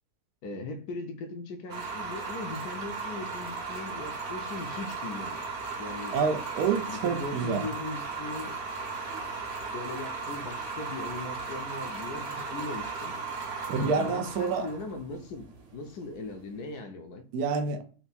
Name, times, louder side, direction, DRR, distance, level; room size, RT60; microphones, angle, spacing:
voice 1, 0.4-5.4 5.8-6.2 6.8-8.5 9.6-13.2 13.8-15.5 15.7-17.2, left 3 dB, 75° left, 5 dB, 1.2 m, -39 dB
sound 1, 1.7-16.6, right 4 dB, 50° right, 1.0 m, -37 dB
voice 2, 6.1-7.7 13.7-14.7 17.3-17.8, right 5 dB, 75° right, 6 dB, 1.1 m, -28 dB
4.5 x 2.1 x 4.0 m, 0.39 s
omnidirectional pair, 1.8 m